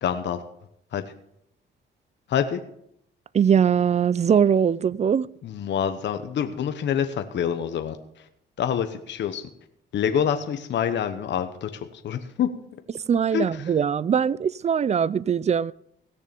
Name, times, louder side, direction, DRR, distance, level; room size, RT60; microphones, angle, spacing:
voice 1, 0.0-0.4 0.9-1.0 2.3-2.6 5.4-8.3 8.6-9.5 9.9-12.5 13.3-13.7, left 8 dB, 65° left, 1.1 m, -27 dB
voice 2, 3.3-5.3 13.1-15.7, right 7 dB, 35° right, 0.4 m, -21 dB
17.0 x 6.7 x 6.9 m
cardioid pair, 90°, 20 cm